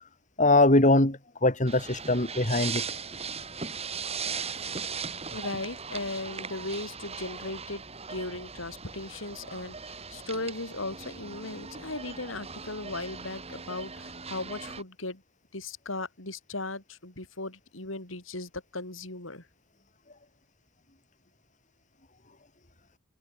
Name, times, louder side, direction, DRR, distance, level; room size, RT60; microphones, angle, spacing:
voice 1, 0.4-2.8, left 2 dB, 40° left, 5.0 m, -22 dB
sound 1, 1.7-14.8, right 5 dB, 30° right, 5.3 m, -39 dB
voice 2, 5.3-7.8 8.1-15.2 15.5-19.5, left 2 dB, 90° left, 6.6 m, -37 dB
head